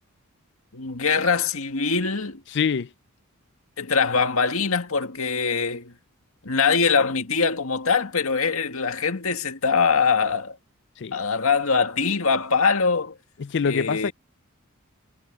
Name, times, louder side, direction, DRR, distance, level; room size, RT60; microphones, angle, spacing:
voice 1, 0.7-2.4 3.8-5.9 6.4-10.6 11.1-13.2 13.6-14.1, left 5 dB, 80° left, 1.9 m, -23 dB
voice 2, 2.5-2.9 11.0-11.2 13.4-14.1, left 6 dB, 55° left, 0.4 m, -25 dB
head